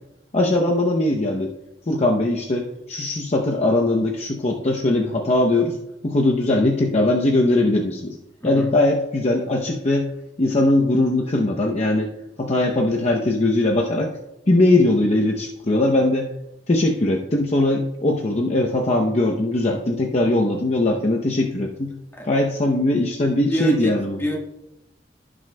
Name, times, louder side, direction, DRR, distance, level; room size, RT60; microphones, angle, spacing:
voice 1, 0.3-1.5 1.9-5.8 6.0-8.1 8.4-10.1 10.4-12.1 12.4-14.1 14.5-16.3 16.7-21.9 22.3-24.2, left 2 dB, 40° left, 1 dB, 0.7 m, -20 dB
voice 2, 23.5-23.9 24.2-24.4, equal, 15° left, -1 dB, 1.4 m, -26 dB
16.0 x 6.1 x 2.2 m, 0.91 s
head